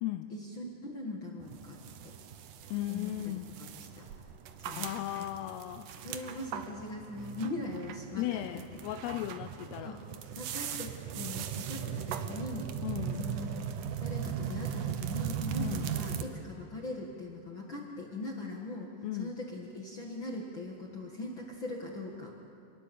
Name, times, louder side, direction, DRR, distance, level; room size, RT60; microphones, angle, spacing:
voice 1, 0.3-1.8 2.0-2.1 2.9-3.1 3.6-4.0 4.6-4.9 5.2-5.3 6.0-8.4 9.8-10.0 10.4-12.7 13.2-22.3, left 2 dB, 50° left, -1 dB, 1.5 m, -41 dB
sound 1, 1.4-16.2, right 9 dB, 75° right, 1.9 m, -38 dB
voice 2, 2.7-3.5 4.7-5.9 8.2-10.0 12.8-13.3 15.6-16.0 19.0-19.3, left 14 dB, 80° left, 8 dB, 2.6 m, -36 dB
28.0 x 20.0 x 7.2 m, 2.5 s
omnidirectional pair, 5.1 m